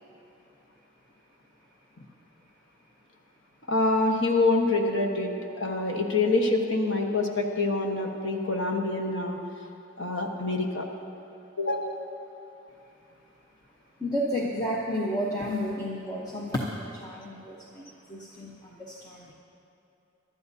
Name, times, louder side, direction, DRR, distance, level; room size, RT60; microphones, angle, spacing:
voice 1, 3.7-9.4 10.0-10.9 11.6-12.0, left 2 dB, 65° left, 2 dB, 1.2 m, -26 dB
voice 2, 14.0-19.3, equal, 20° left, -3 dB, 0.8 m, -32 dB
23.5 x 12.0 x 2.7 m, 2.9 s
head